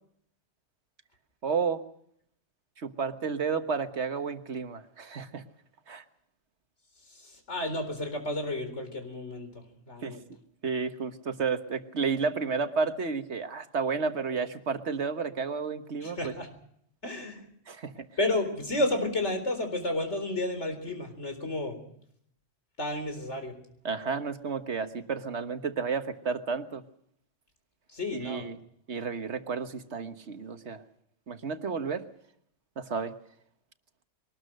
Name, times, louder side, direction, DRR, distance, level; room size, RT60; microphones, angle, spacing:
voice 1, 1.4-1.8 2.8-5.4 5.9-6.0 10.0-10.2 10.6-16.3 17.7-18.1 23.8-26.8 28.1-28.6 28.9-30.8 31.3-32.0 32.8-33.1, right 5 dB, 70° right, 9 dB, 1.6 m, -31 dB
voice 2, 7.1-10.2 16.0-16.5 17.0-17.4 18.2-21.8 22.8-23.6 27.9-28.5, left 2 dB, 75° left, 7 dB, 4.4 m, -32 dB
22.5 x 19.5 x 6.5 m, 0.68 s
omnidirectional pair, 1.2 m